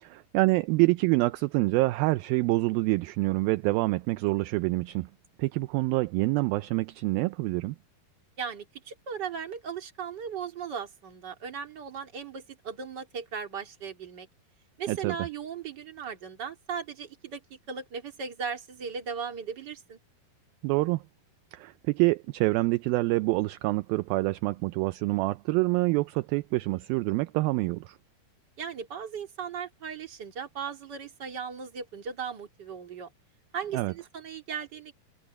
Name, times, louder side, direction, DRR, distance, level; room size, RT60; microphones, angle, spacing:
voice 1, 0.0-5.1 5.4-7.8 14.9-15.2 20.6-21.0 21.5-28.0 33.7-33.9, right 22 dB, 80° right, 2.2 m, -26 dB
voice 2, 8.4-14.3 14.8-20.0 28.6-33.1 33.5-34.9, right 6 dB, 30° right, 2.7 m, -37 dB
omnidirectional pair, 4.5 m